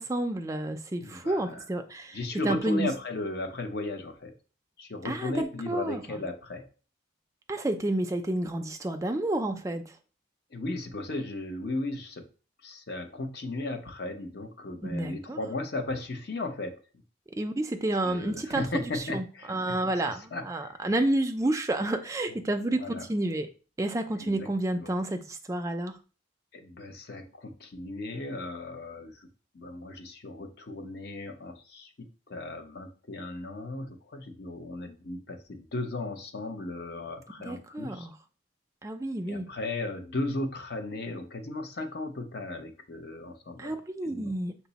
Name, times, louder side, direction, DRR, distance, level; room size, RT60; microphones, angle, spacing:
voice 1, 0.0-2.2 2.4-2.9 5.0-6.2 7.5-10.0 14.8-15.4 17.4-23.5 23.8-26.0 37.4-38.1 38.8-39.5 43.6-44.6, right 1 dB, 15° right, 0.3 m, -30 dB
voice 2, 1.0-1.6 2.1-4.4 4.8-6.7 10.5-12.3 12.6-16.8 18.0-19.8 20.1-20.7 22.3-22.4 22.8-23.1 24.2-24.5 24.7-24.9 26.5-29.3 29.5-38.1 39.3-43.7 44.0-44.3, left 2 dB, 55° left, 0.6 m, -36 dB
5.7 x 2.0 x 4.0 m
head